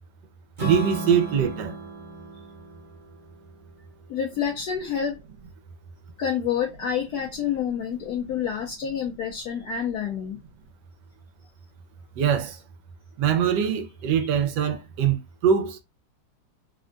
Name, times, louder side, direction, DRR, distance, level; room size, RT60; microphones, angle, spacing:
Strum, 0.6-4.8, right 3 dB, 35° right, 0.8 m, -36 dB
voice 1, 0.6-1.7 12.2-12.6 13.2-15.2 15.4-15.8, right 8 dB, 80° right, 1.2 m, -22 dB
voice 2, 4.1-5.2 6.2-10.4, left 8 dB, 70° left, 1.1 m, -28 dB
3.5 x 2.1 x 2.5 m
omnidirectional pair, 1.9 m